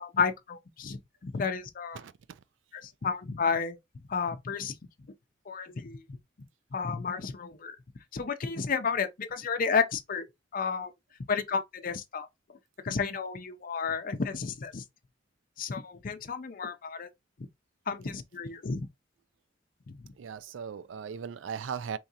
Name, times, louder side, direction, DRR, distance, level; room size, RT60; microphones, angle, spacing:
voice 1, 0.0-2.0 2.7-3.8 4.1-4.7 5.5-6.0 6.7-7.8 8.1-10.3 10.5-10.9 11.3-12.3 12.8-14.8 15.6-17.1 17.9-18.9, left 5 dB, 45° left, 0.5 m, -31 dB
voice 2, 20.2-22.0, right 7 dB, 80° right, 0.4 m, -37 dB
3.6 x 3.1 x 2.7 m
head